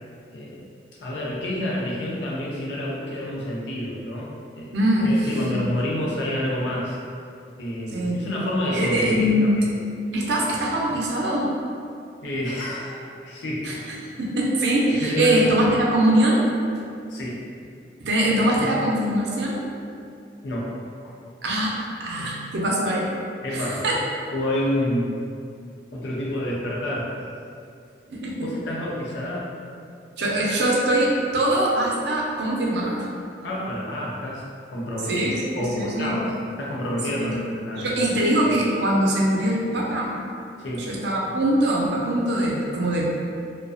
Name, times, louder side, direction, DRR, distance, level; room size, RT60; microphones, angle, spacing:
voice 1, 0.3-0.6 1.0-4.8 5.0-7.0 7.6-9.3 9.6-9.7 12.2-13.7 15.0-15.4 17.1-17.5 20.4-20.7 21.0-21.1 23.4-23.8 24.3-25.2 25.9-27.1 28.4-29.5 33.4-34.4 34.7-36.2 36.6-37.9 40.6-40.9, left 1 dB, 85° left, -4 dB, 0.5 m, -28 dB
voice 2, 4.7-5.7 7.9-8.2 8.7-9.7 10.1-11.5 13.6-16.5 18.0-19.7 21.4-21.7 22.0-23.1 23.5-24.0 28.1-28.4 30.2-33.1 35.1-36.1 37.2-37.3 37.8-40.1 40.9-43.1, right 1 dB, 75° right, -3 dB, 0.4 m, -22 dB
2.3 x 2.2 x 2.4 m, 2.4 s
head